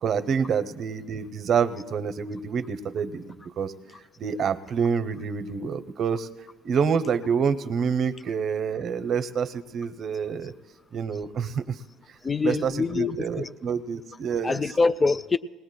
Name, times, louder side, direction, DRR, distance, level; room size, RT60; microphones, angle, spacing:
voice 1, 0.0-3.7 4.2-6.3 6.6-10.5 10.9-11.8 12.4-14.6, right 6 dB, 50° right, 0.6 m, -27 dB
voice 2, 12.2-13.5 14.4-15.4, left 4 dB, 20° left, 0.3 m, -24 dB
19.5 x 19.0 x 2.2 m
supercardioid pair, 95°, 0 cm